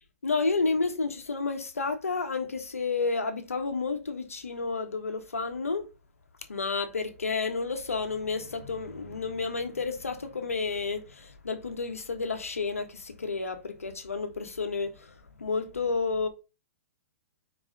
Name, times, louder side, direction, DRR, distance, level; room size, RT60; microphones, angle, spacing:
voice 1, 0.2-5.8 6.5-15.1 15.4-16.3, left 4 dB, 85° left, 1.5 m, -31 dB
4.9 x 4.8 x 5.2 m
hypercardioid pair, 115°, 7 cm